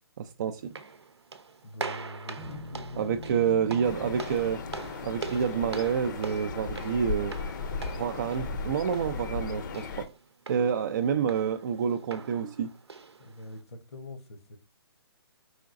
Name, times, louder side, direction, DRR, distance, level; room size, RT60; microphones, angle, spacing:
voice 1, 0.2-0.6 3.0-4.6 5.0-7.4 7.9-10.1 10.5-12.7, right 7 dB, 45° right, 0.4 m, -28 dB
sound 1, 0.6-13.6, right 4 dB, 90° right, 0.7 m, -43 dB
voice 2, 1.6-3.4 13.2-14.6, left 1 dB, 80° left, 1.0 m, -44 dB
sound 2, 2.4-6.8, left 1 dB, 10° right, 0.8 m, -46 dB
sound 3, 3.8-10.1, left 4 dB, 50° left, 0.6 m, -36 dB
4.9 x 3.7 x 2.5 m
hypercardioid pair, 150°, 13 cm